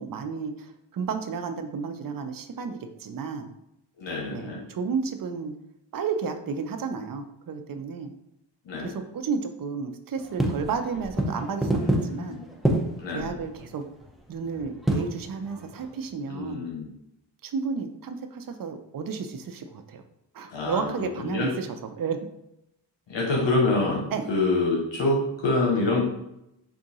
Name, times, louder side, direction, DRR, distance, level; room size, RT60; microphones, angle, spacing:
voice 1, 0.0-3.5 4.3-5.5 5.9-8.1 8.8-11.8 12.1-12.4 13.1-13.8 14.3-16.7 17.4-20.0 20.3-22.2 24.1-24.3, right 5 dB, 45° right, 7 dB, 0.5 m, -32 dB
voice 2, 4.0-4.6 8.6-8.9 11.7-12.4 13.0-13.3 16.3-16.9 20.5-21.5 23.1-26.0, left 2 dB, 65° left, -1 dB, 1.0 m, -26 dB
sound 1, 10.2-16.1, right 1 dB, ahead, 0.6 m, -28 dB
3.7 x 2.4 x 4.0 m, 0.83 s
cardioid pair, 70°, 47 cm